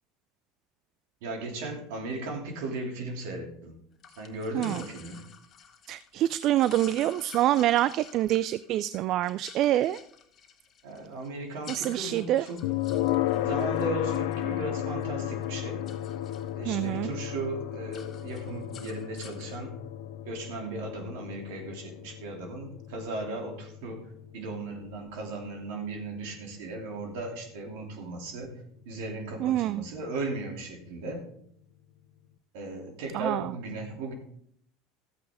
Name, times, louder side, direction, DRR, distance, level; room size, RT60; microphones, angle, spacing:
voice 1, 1.2-3.7 4.2-5.2 10.8-12.6 13.4-15.8 16.5-19.8 20.2-31.2 32.5-34.1, right 2 dB, 70° right, 2 dB, 2.8 m, -36 dB
sound 1, 4.0-15.1 15.4-16.9 17.2-17.5 17.7-19.6, left 7 dB, 45° left, 1.4 m, -51 dB
voice 2, 5.9-10.0 11.7-12.4 16.7-17.1 29.4-29.8 33.1-33.5, right 13 dB, 55° right, 17 dB, 0.3 m, -26 dB
sound 2, 12.6-27.6, left 13 dB, 70° left, 0.7 m, -34 dB
13.5 x 8.4 x 3.6 m, 0.67 s
hypercardioid pair, 80°, 0 cm